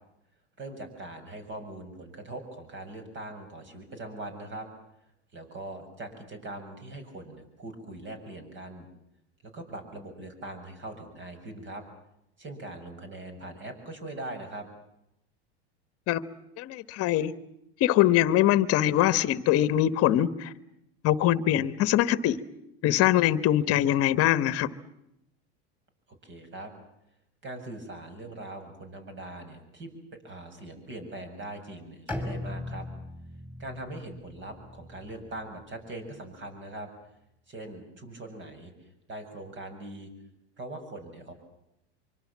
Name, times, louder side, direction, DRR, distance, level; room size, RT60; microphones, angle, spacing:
voice 1, 0.6-4.7 5.3-8.9 9.5-11.8 12.4-14.7 26.2-26.7 27.4-29.9 30.2-32.8 33.6-36.9 37.5-38.7 39.1-40.1 40.6-41.3, right 2 dB, 35° right, 6 dB, 7.3 m, -41 dB
voice 2, 16.6-17.3 17.8-20.5 21.0-22.4 22.8-24.7, left 13 dB, 45° left, 15 dB, 1.4 m, -23 dB
Bowed string instrument, 32.1-36.0, left 2 dB, 5° right, 5.6 m, -39 dB
25.0 x 24.5 x 7.5 m, 0.83 s
supercardioid pair, 110°, 33 cm